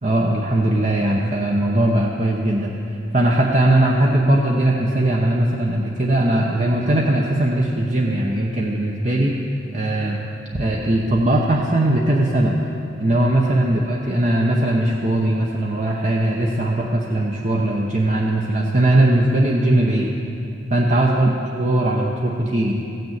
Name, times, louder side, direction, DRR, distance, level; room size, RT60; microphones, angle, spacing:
voice 1, 0.0-2.7 3.1-9.3 9.7-10.2 10.5-12.6 13.0-20.1 20.7-21.3 21.6-22.8, right 1 dB, 40° right, -2 dB, 0.9 m, -19 dB
15.5 x 6.8 x 8.1 m, 2.7 s
head